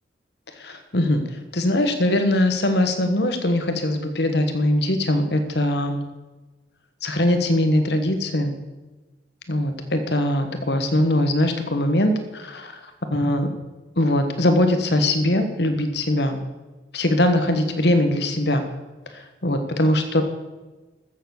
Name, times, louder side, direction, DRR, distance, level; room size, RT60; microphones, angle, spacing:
voice 1, 0.6-1.2 1.5-6.0 7.0-8.5 9.5-12.7 13.1-13.5 14.0-16.4 16.9-18.6 19.4-20.2, left 1 dB, 65° left, 7 dB, 1.4 m, -21 dB
14.0 x 7.2 x 7.1 m, 1.2 s
head